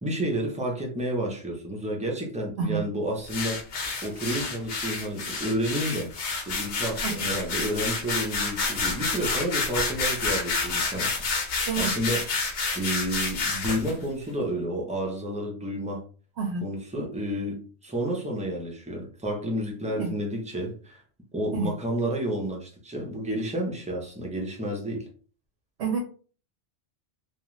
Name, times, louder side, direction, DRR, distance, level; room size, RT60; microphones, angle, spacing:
voice 1, 0.0-3.6 4.0-11.4 11.8-16.0 16.6-21.0 21.3-25.1, right 1 dB, 10° right, -1 dB, 0.4 m, -30 dB
voice 2, 2.6-2.8 7.0-7.1 11.7-11.9 16.4-16.6 19.9-20.1 21.5-21.7 25.8-26.0, right 6 dB, 70° right, 3 dB, 0.8 m, -28 dB
sound 1, 3.3-13.9, left 4 dB, 75° left, 1.0 m, -29 dB
2.4 x 2.3 x 3.0 m, 0.40 s
omnidirectional pair, 1.2 m